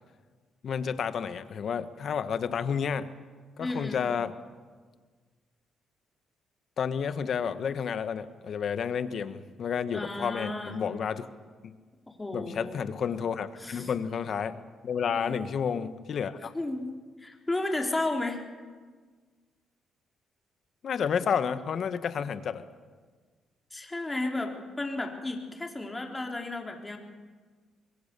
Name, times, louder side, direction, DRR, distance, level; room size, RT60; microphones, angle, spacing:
voice 1, 0.6-3.1 3.6-4.3 6.8-11.2 12.3-14.6 14.8-16.5 20.8-22.6, left 7 dB, 60° left, 11 dB, 1.4 m, -30 dB
voice 2, 3.6-4.0 9.9-10.8 12.1-12.8 13.6-13.9 15.1-15.5 16.5-18.4 23.7-27.0, left 2 dB, 15° left, 2 dB, 3.7 m, -33 dB
26.5 x 22.0 x 6.9 m, 1.5 s
cardioid pair, 90°, 0 cm